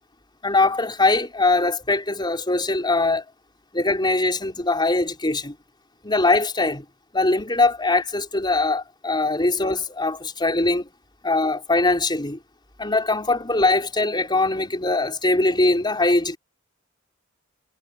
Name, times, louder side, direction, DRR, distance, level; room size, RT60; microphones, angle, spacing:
voice 1, 0.4-3.2 3.7-5.5 6.0-6.8 7.1-10.9 11.2-12.4 12.8-16.4, left 2 dB, 20° left, 4.9 m, -21 dB
head